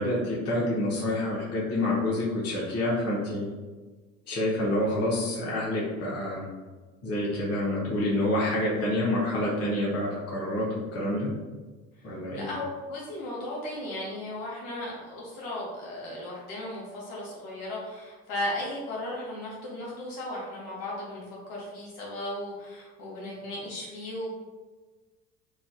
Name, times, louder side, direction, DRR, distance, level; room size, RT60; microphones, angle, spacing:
voice 1, 0.0-3.5 4.3-6.5 7.0-11.3 12.0-12.5, left 1 dB, 45° left, -6 dB, 1.0 m, -28 dB
voice 2, 12.3-21.2 21.5-24.3, left 1 dB, 70° left, -5 dB, 1.3 m, -36 dB
3.1 x 2.3 x 2.7 m, 1.3 s
hypercardioid pair, 75°, 34 cm